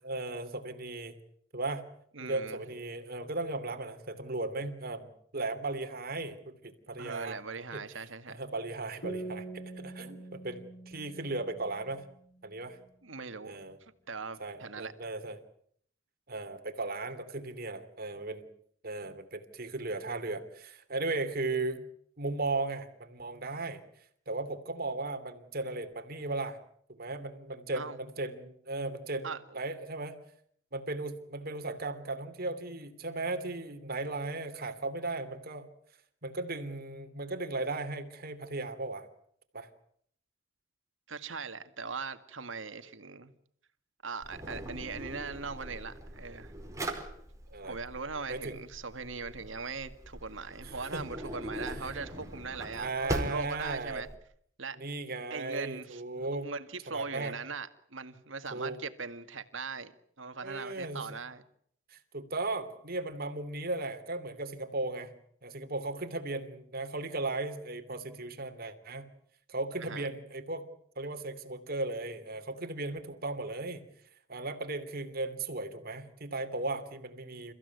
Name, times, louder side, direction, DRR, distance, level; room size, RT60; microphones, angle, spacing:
voice 1, 0.0-1.2 1.5-1.8 2.2-7.4 7.7-12.0 12.4-12.8 13.4-13.8 14.4-15.4 16.3-18.5 18.8-21.9 22.2-23.8 24.3-26.6 26.9-30.2 30.7-35.7 36.2-39.1 39.5-39.7 47.5-47.8 48.3-48.6 50.6-51.0 51.5-51.9 52.7-54.1 54.7-56.5 56.9-57.3 58.5-58.8 60.4-61.2 61.9-65.1 65.4-69.1 69.5-70.7 71.0-73.8 74.3-77.5, right 2 dB, 50° right, 2.9 m, -36 dB
voice 2, 2.1-2.6 7.0-8.4 13.0-13.6 14.1-14.9 27.7-28.0 29.2-29.6 41.1-43.3 44.0-46.5 47.7-52.9 53.2-54.1 54.6-54.8 55.3-56.0 56.4-59.9 60.2-61.4 69.8-70.1, right 4 dB, 80° right, 2.0 m, -40 dB
sound 1, 9.0-12.5, right 2 dB, 80° left, 4.5 m, -44 dB
Drawer open or close, 44.2-54.2, right 1 dB, 15° right, 4.8 m, -41 dB
29.5 x 15.5 x 9.5 m
head